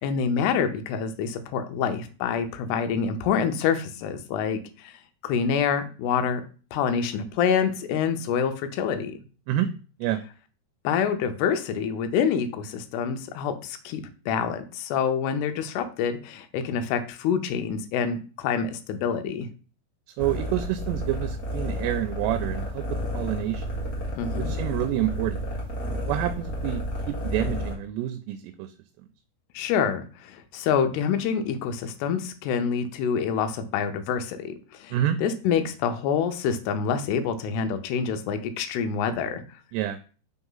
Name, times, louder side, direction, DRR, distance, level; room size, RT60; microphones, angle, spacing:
voice 1, 0.0-4.9 5.2-6.4 6.7-9.2 10.8-19.5 24.2-24.5 29.5-39.4, left 7 dB, 80° left, 8 dB, 2.8 m, -27 dB
sound 1, 20.2-27.7, equal, 50° left, 1.0 m, -31 dB
voice 2, 20.2-23.7 24.4-25.4 26.1-26.8 27.1-28.7 34.9-35.2 39.7-40.0, right 13 dB, 85° right, 10 dB, 2.7 m, -28 dB
6.2 x 3.5 x 5.5 m, 0.37 s
omnidirectional pair, 5.0 m